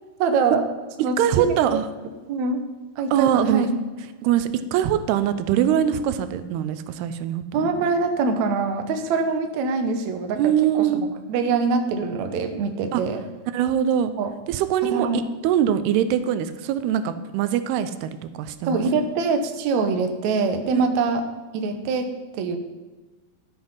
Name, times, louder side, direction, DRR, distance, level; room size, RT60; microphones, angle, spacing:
voice 1, 0.2-0.6 1.0-1.5 2.3-2.6 3.0-3.7 5.7-5.8 7.5-10.4 10.7-13.2 14.2-14.3 14.9-15.2 18.7-21.2 21.5-22.1 22.3-22.6, right 4 dB, 70° right, 6 dB, 1.8 m, -24 dB
voice 2, 1.0-1.9 3.1-3.7 4.2-7.8 10.4-11.0 12.9-13.0 13.5-14.1 14.5-18.8 20.7-21.0, right 10 dB, 90° right, 11 dB, 2.7 m, -23 dB
13.0 x 7.8 x 5.6 m, 1.3 s
omnidirectional pair, 4.5 m